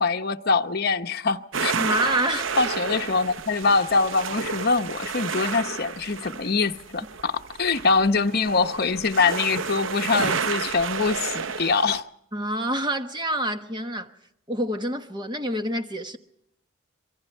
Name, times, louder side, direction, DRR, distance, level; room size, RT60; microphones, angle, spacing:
voice 1, 0.0-1.7 2.3-12.0, left 4 dB, 50° left, 0.9 m, -24 dB
sound 1, 1.5-12.0, right 5 dB, 80° right, 0.7 m, -31 dB
voice 2, 1.8-2.5 12.3-14.1 14.5-16.2, right 1 dB, 25° right, 1.2 m, -27 dB
26.0 x 23.5 x 4.5 m
head